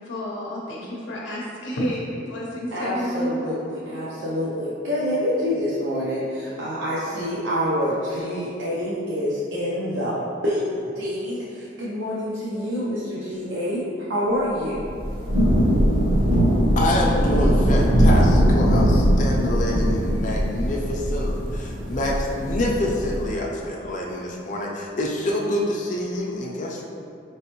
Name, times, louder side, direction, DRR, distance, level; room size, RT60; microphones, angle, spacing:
voice 1, 0.0-3.6 3.9-4.0, equal, 85° left, -4 dB, 0.6 m, -30 dB
voice 2, 2.7-14.8, equal, 90° right, -8 dB, 0.6 m, -27 dB
Thunder / Rain, 14.8-23.3, equal, 50° right, 0.8 m, -20 dB
voice 3, 16.8-26.8, left 1 dB, 45° left, -2 dB, 0.5 m, -27 dB
4.2 x 3.1 x 3.0 m, 2.5 s
head